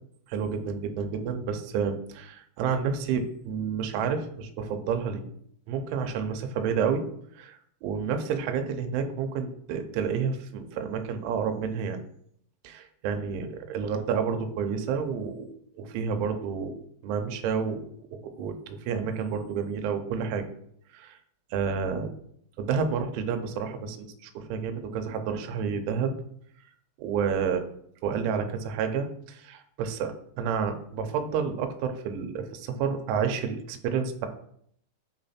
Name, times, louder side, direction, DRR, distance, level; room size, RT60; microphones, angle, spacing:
voice 1, 0.3-5.2 5.7-7.0 7.4-12.0 12.6-18.1 18.4-20.4 20.9-21.2 21.5-22.1 22.6-26.1 27.0-27.6 28.0-34.3, right 6 dB, 85° right, 5 dB, 3.1 m, -30 dB
8.3 x 3.2 x 4.2 m, 0.67 s
omnidirectional pair, 5.6 m